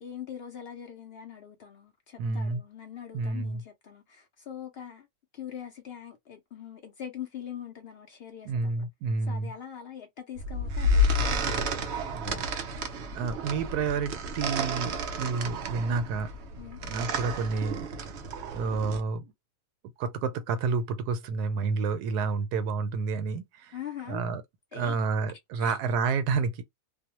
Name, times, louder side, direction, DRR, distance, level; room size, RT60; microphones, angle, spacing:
voice 1, 0.0-5.1 5.3-8.9 9.3-12.5 12.9-13.2 16.6-16.8 23.7-24.3 24.7-25.0 25.6-25.8, left 9 dB, 80° left, 0.5 m, -43 dB
voice 2, 2.2-2.6 3.1-3.6 8.5-9.5 12.1-12.4 13.1-16.3 16.8-17.9 18.5-19.3 20.0-23.7 24.1-24.4 24.7-26.6, right 4 dB, 85° right, 1.2 m, -29 dB
sound 1, 10.4-19.0, left 1 dB, 60° right, 0.7 m, -30 dB
2.6 x 2.1 x 2.9 m
omnidirectional pair, 1.7 m